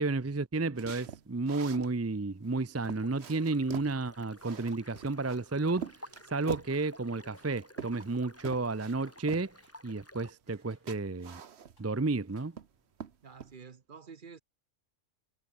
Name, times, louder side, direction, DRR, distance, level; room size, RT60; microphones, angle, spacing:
voice 1, 0.0-5.9 6.3-9.5 9.8-11.4 11.8-12.5, right 3 dB, 20° right, 0.5 m, -32 dB
sound 1, 0.8-1.9 2.4-2.5 2.8-3.9 4.4-5.4 5.8-6.8 7.4-8.2 8.4-8.9 9.3-9.5 10.5-10.6 10.9-11.9 12.3-12.7 13.0-13.5, right 7 dB, 60° right, 1.3 m, -44 dB
sound 2, 2.8-10.3, left 1 dB, 10° left, 3.4 m, -54 dB
sound 3, 6.1-6.4 6.7-7.6 7.9-8.2 8.5-8.8 9.1-9.3 9.6-9.8 10.2-11.5 11.8-12.0 12.4-12.9, left 2 dB, 85° left, 6.3 m, -71 dB
voice 2, 13.2-14.4, right 6 dB, 45° right, 1.1 m, -50 dB
omnidirectional pair, 1.3 m